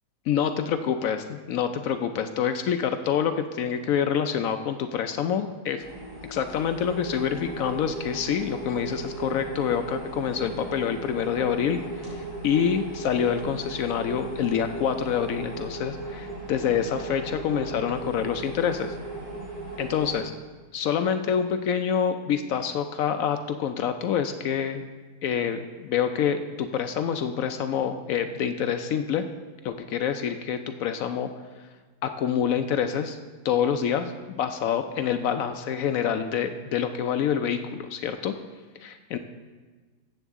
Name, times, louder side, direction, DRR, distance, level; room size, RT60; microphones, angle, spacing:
voice 1, 0.3-5.9 6.3-19.0 19.8-20.3 20.7-24.8 25.2-29.3 29.6-31.3 32.0-33.2 33.4-38.4 38.8-39.2, left 8 dB, 75° left, 8 dB, 0.7 m, -27 dB
sound 1, 5.8-20.2, right 2 dB, 85° right, 4.6 m, -37 dB
13.5 x 8.1 x 3.6 m, 1.3 s
omnidirectional pair, 1.9 m